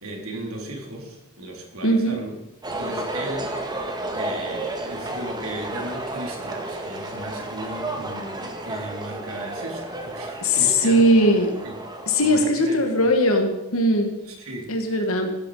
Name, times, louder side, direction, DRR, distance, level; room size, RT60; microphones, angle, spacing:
voice 1, 0.0-2.4 2.7-3.6 4.1-11.3 11.6-11.8 12.2-13.0 14.4-14.7, right 1 dB, 75° right, 1 dB, 3.9 m, -36 dB
voice 2, 1.8-2.2 10.4-11.5 12.1-14.2 14.7-15.4, equal, 70° left, 3 dB, 2.2 m, -19 dB
sound 1, 2.6-12.5, right 2 dB, 20° right, 1.8 m, -32 dB
15.5 x 13.5 x 5.1 m, 0.95 s
head